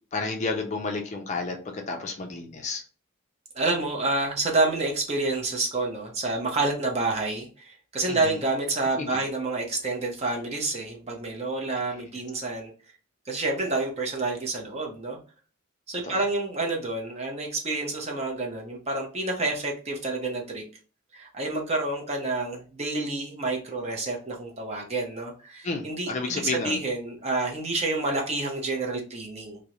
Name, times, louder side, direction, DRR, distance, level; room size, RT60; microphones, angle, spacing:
voice 1, 0.1-2.8 8.1-8.3 9.0-9.2 16.0-16.2 25.6-26.8, left 3 dB, 35° left, 3 dB, 0.4 m, -31 dB
voice 2, 3.5-12.7 13.3-15.2 15.9-20.6 21.1-29.6, right 2 dB, 30° right, 0 dB, 0.6 m, -28 dB
2.4 x 2.0 x 2.8 m, 0.39 s
head